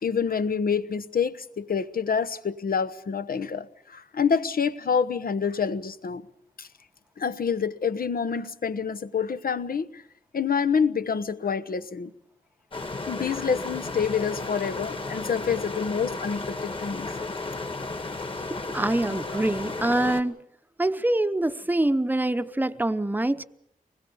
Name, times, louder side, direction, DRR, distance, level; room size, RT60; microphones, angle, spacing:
voice 1, 0.0-6.2 6.6-6.7 7.2-10.0 10.3-12.1 13.1-17.2, left 6 dB, 75° left, 1.1 m, -27 dB
sound 1, 12.7-20.2, left 3 dB, 35° left, 1.9 m, -34 dB
voice 2, 18.5-20.4 20.8-23.4, right 1 dB, 10° right, 0.8 m, -25 dB
25.0 x 20.5 x 7.1 m
wide cardioid pair, 110°, 15 cm